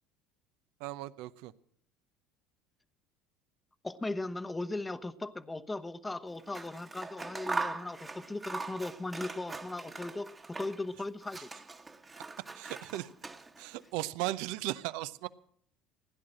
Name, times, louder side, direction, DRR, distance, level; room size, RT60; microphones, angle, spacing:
voice 1, 0.8-1.5 12.5-13.1 13.6-15.3, right 16 dB, 70° right, 0.7 m, -36 dB
voice 2, 3.8-11.5, left 2 dB, 15° left, 0.9 m, -38 dB
Scissors, 6.4-10.9 11.2-13.8, right 3 dB, 20° right, 1.3 m, -41 dB
16.0 x 10.5 x 7.7 m
hypercardioid pair, 80°, 0 cm